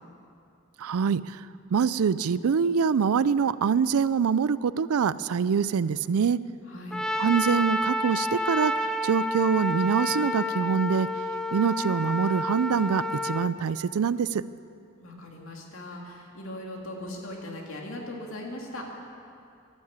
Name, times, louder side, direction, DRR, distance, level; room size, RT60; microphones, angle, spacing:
voice 1, 0.8-1.4 1.7-6.4 7.2-11.1 11.5-14.4, right 6 dB, 85° right, 17 dB, 0.4 m, -25 dB
voice 2, 6.7-7.0 15.0-18.9, left 1 dB, 65° left, 0 dB, 2.5 m, -39 dB
Trumpet, 6.9-13.5, left 1 dB, 5° left, 0.5 m, -29 dB
12.5 x 12.0 x 8.2 m, 2.5 s
head